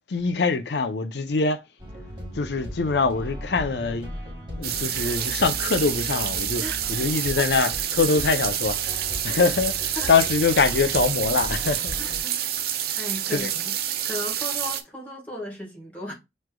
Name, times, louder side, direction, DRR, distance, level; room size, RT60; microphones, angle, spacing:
voice 1, 0.1-1.6 2.3-4.1 4.6-6.6 6.9-9.0 9.2-12.0 13.3-13.5, left 4 dB, 70° left, 0.6 m, -23 dB
sound 1, 1.8-12.2, equal, 25° right, 1.7 m, -37 dB
sound 2, 4.6-14.8, right 10 dB, 55° right, 0.5 m, -28 dB
voice 2, 6.6-7.0 7.4-7.5 10.0-10.1 12.0-16.1, left 1 dB, 10° left, 1.6 m, -36 dB
6.0 x 3.2 x 2.2 m
head